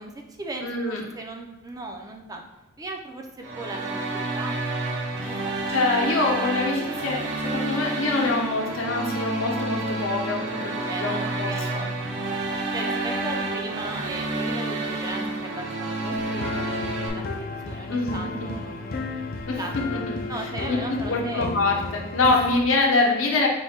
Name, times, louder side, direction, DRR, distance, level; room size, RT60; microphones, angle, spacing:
voice 1, 0.0-2.4 2.8-4.6 5.2-5.6 10.9-11.9 12.7-19.0 19.6-21.5, right 2 dB, 20° right, 2 dB, 0.4 m, -37 dB
voice 2, 0.6-1.0 5.2-11.8 12.8-13.3 17.9-18.1 18.4-18.5 19.5-19.6 19.9-20.2 20.7-23.5, left 3 dB, 75° left, -1 dB, 0.8 m, -25 dB
sound 1, 3.4-17.1, right 2 dB, 60° right, 0.8 m, -29 dB
sound 2, 16.1-22.6, left 3 dB, 45° left, 0.4 m, -33 dB
4.5 x 2.2 x 4.1 m, 1.1 s
head